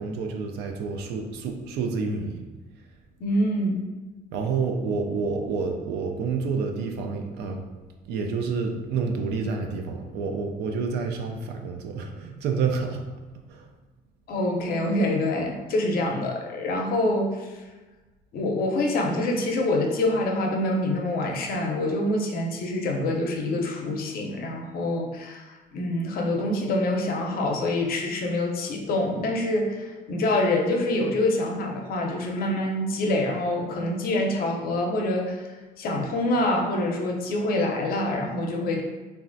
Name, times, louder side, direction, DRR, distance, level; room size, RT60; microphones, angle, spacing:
voice 1, 0.0-2.5 4.3-7.6 8.1-13.0 13.5-13.7, right 4 dB, 80° right, 3 dB, 0.4 m, -29 dB
voice 2, 3.2-3.8 14.3-17.6 18.3-35.5 35.8-38.8, left 1 dB, 60° left, 1 dB, 0.6 m, -26 dB
3.1 x 2.4 x 2.5 m, 1.2 s
cardioid pair, 110°, 17 cm